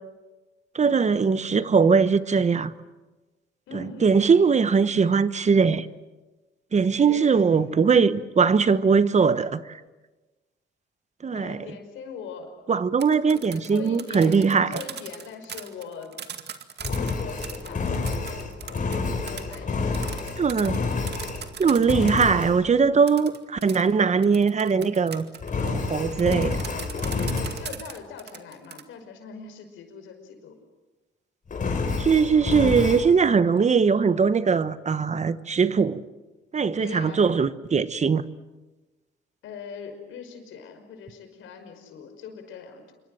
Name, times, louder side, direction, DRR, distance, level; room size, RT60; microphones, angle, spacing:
voice 1, 0.7-2.7 3.7-5.9 6.7-9.8 11.2-11.6 12.7-14.8 20.4-20.8 21.6-25.3 25.6-26.6 32.0-36.0 36.5-38.2, right 5 dB, 35° right, 1.1 m, -21 dB
voice 2, 3.7-4.1 7.1-8.0 11.3-12.5 13.3-16.1 16.8-18.4 19.2-20.1 27.6-30.6 36.8-37.3 39.4-42.9, left 6 dB, 85° left, 5.5 m, -41 dB
sound 1, 12.8-22.5 23.1-28.8, right 8 dB, 55° right, 2.1 m, -40 dB
Engine, 16.8-21.5 21.9-22.6 25.4-27.7 31.5-33.1, left 4 dB, 40° left, 5.6 m, -29 dB
27.0 x 24.5 x 7.8 m
cardioid pair, 90°, 20 cm